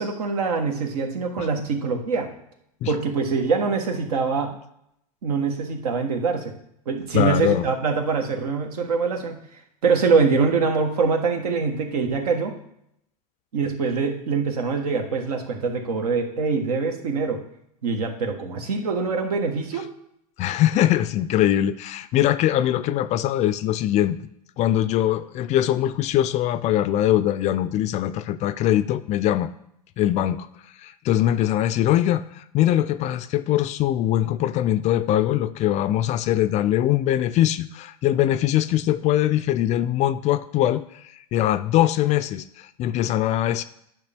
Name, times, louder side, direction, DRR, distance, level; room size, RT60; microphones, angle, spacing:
voice 1, 0.0-2.3 2.9-4.5 5.2-6.5 6.9-9.4 9.8-12.5 13.5-17.4 17.8-19.9, right 4 dB, 75° right, 4 dB, 1.4 m, -24 dB
voice 2, 7.1-7.6 20.4-24.2 24.6-29.5 30.0-30.5 30.8-41.0 41.3-43.6, left 12 dB, 35° left, 15 dB, 0.4 m, -22 dB
10.5 x 5.8 x 3.5 m, 0.76 s
hypercardioid pair, 95°, 20 cm